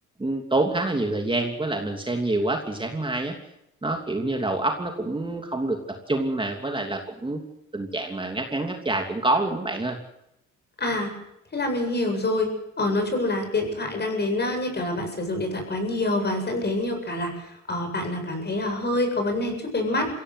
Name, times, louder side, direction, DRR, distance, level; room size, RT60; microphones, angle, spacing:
voice 1, 0.2-3.4 3.8-5.8 6.1-7.4 7.7-10.0, right 2 dB, 15° right, 2 dB, 3.0 m, -26 dB
voice 2, 10.8-11.1 11.5-12.5 12.8-20.1, left 2 dB, 35° left, 5 dB, 7.9 m, -26 dB
22.5 x 17.0 x 8.1 m, 0.83 s
cardioid pair, 90°, 30 cm